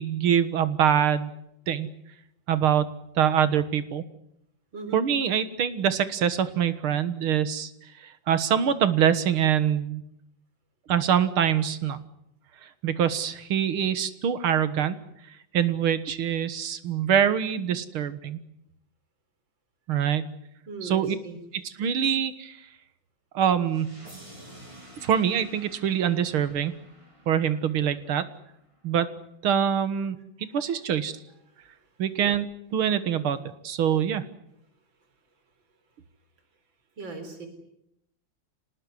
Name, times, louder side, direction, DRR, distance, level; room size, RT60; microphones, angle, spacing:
voice 1, 0.0-1.4 1.7-1.9 2.5-4.0 4.9-7.7 8.3-10.0 10.9-12.0 12.8-15.0 15.5-18.4 19.9-20.2 20.8-21.2 21.5-22.6 23.3-23.9 25.0-26.7 27.3-28.3 28.8-29.1 29.4-30.2 30.5-31.1 32.0-33.4 33.6-34.2, right 8 dB, 90° right, 12 dB, 2.3 m, -24 dB
voice 2, 4.7-5.0 20.7-21.4 37.0-37.5, right 3 dB, 65° right, 7 dB, 4.9 m, -38 dB
sound 1, 23.6-28.6, right 1 dB, 15° right, 4.0 m, -50 dB
26.0 x 19.5 x 9.7 m, 0.81 s
omnidirectional pair, 2.3 m